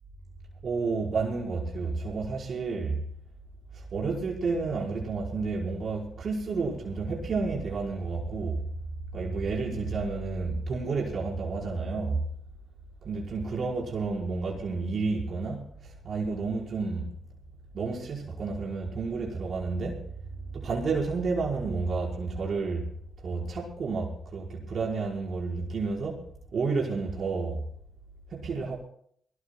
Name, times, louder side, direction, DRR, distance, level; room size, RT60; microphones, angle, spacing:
voice 1, 0.6-3.0 3.7-8.7 9.1-12.2 13.0-17.2 17.7-20.0 20.5-26.3 26.5-27.7 28.3-28.8, right 4 dB, 65° right, 5.1 m, -31 dB
23.0 x 19.0 x 2.3 m
cardioid pair, 60°, 0 cm